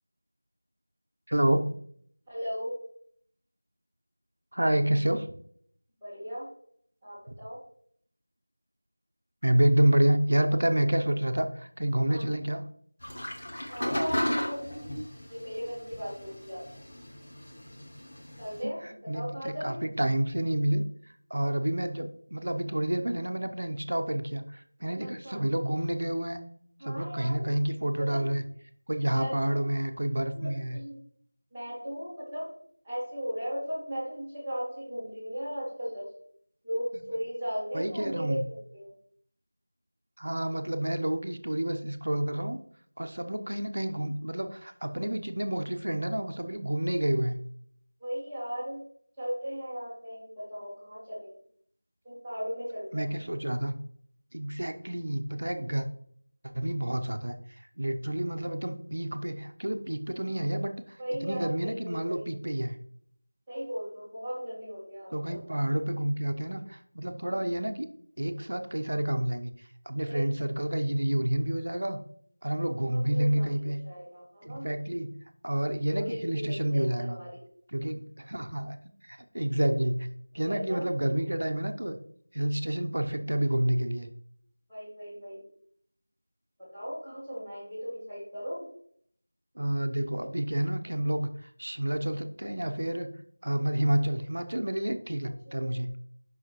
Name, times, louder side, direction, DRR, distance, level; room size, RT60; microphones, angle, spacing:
voice 1, 1.3-1.8 4.5-5.4 7.3-7.4 9.4-12.6 18.8-20.8 21.3-26.4 26.8-28.4 28.9-30.8 37.7-38.4 40.2-42.6 43.0-47.4 52.9-53.7 54.3-55.9 56.5-57.3 57.8-62.8 65.1-67.9 68.2-72.0 72.4-73.8 74.4-75.1 75.4-77.2 77.7-78.8 79.0-82.0 82.3-84.1 89.5-93.1 93.4-95.9, right 1 dB, 65° right, 7 dB, 0.8 m, -29 dB
voice 2, 2.3-2.8 6.0-6.5 7.0-7.6 12.1-12.3 13.7-14.6 15.3-16.7 18.4-19.8 25.2-25.5 26.8-27.5 28.0-28.2 29.1-29.7 30.3-30.9 31.5-32.5 32.8-36.1 36.6-38.9 48.0-48.8 49.2-51.4 52.0-53.2 61.0-62.3 63.5-65.4 70.0-70.8 72.9-74.7 75.8-77.4 80.4-80.8 84.7-85.4 86.6-88.6 95.5-95.8, equal, ahead, -20 dB, 1.8 m, -37 dB
sound 1, 13.0-18.6, equal, 30° left, 1.1 m, -35 dB
7.5 x 5.7 x 3.1 m, 0.63 s
figure-of-eight pair, 180°, 0 cm